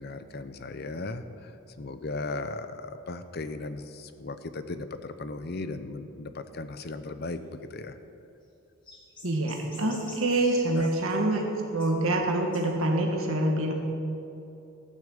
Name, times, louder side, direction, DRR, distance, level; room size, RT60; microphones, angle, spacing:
voice 1, 0.0-8.0 10.7-10.9, left 3 dB, 50° left, 10 dB, 0.6 m, -37 dB
sound 1, 7.2-7.5 8.1-8.2 8.4-8.5 8.8-11.2 11.8-12.2 12.5-12.7, left 2 dB, 25° left, 2.1 m, -48 dB
voice 2, 9.2-11.4 11.7-13.7, right 1 dB, 80° right, 1 dB, 1.7 m, -26 dB
14.5 x 6.4 x 7.7 m, 2.8 s
head